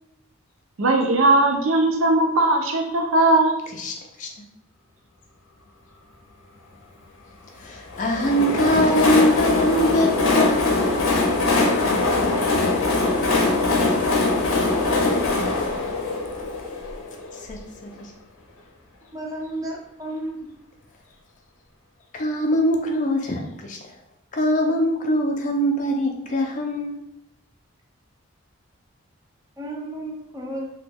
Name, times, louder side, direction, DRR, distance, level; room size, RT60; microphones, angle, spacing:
voice 1, 0.8-3.6, right 2 dB, 75° right, 3 dB, 0.5 m, -18 dB
voice 2, 3.7-4.3 7.6-10.8 17.5-17.6 18.0-18.1 22.1-23.8 24.3-27.0, equal, 35° left, 2 dB, 0.4 m, -22 dB
Train, 7.9-17.6, left 3 dB, 80° left, 0.6 m, -22 dB
voice 3, 19.1-20.5 29.6-30.7, right 1 dB, 15° right, -1 dB, 0.5 m, -32 dB
3.0 x 2.1 x 3.4 m, 0.77 s
head